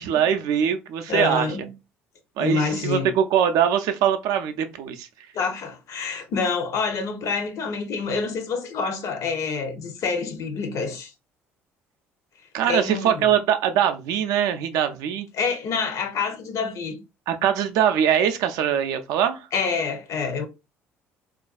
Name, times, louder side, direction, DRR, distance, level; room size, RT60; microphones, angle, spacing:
voice 1, 0.0-1.5 2.4-5.1 12.5-15.3 17.3-19.4, right 9 dB, 65° right, 0.4 m, -22 dB
voice 2, 1.1-1.7 2.4-3.1 5.3-11.1 12.6-13.3 15.3-17.0 19.5-20.4, left 5 dB, 55° left, 0.6 m, -27 dB
2.4 x 2.2 x 2.3 m
hypercardioid pair, 55°, 7 cm